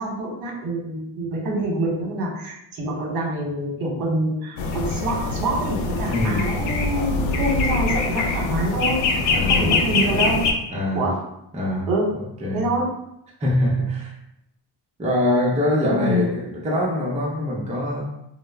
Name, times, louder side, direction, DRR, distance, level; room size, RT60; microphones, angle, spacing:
voice 1, 0.0-10.4 10.9-11.2 11.9-12.1 12.5-12.9 15.8-16.3, right 1 dB, 50° right, -1 dB, 0.9 m, -26 dB
sound 1, 4.6-10.5, left 4 dB, 80° left, 0.5 m, -23 dB
voice 2, 6.1-6.5 9.3-9.7 10.7-11.1 11.5-12.7 13.4-14.2 15.0-18.0, left 1 dB, 15° right, -4 dB, 0.5 m, -24 dB
2.0 x 2.0 x 3.3 m, 0.81 s
cardioid pair, 105°, 45 cm